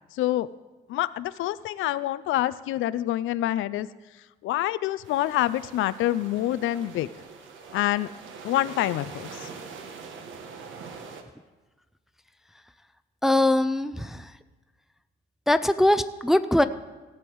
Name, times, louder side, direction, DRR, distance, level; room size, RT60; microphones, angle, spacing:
voice 1, 0.1-0.5 0.9-3.9 4.4-7.1 7.7-8.1 8.4-9.5, left 14 dB, 85° left, 16 dB, 0.5 m, -26 dB
sound 1, 5.0-11.2, right 5 dB, 75° right, 1.3 m, -43 dB
voice 2, 13.2-14.2 15.5-16.6, left 1 dB, ahead, 11 dB, 0.4 m, -21 dB
16.5 x 7.2 x 4.6 m, 1.2 s
cardioid pair, 90°, 20 cm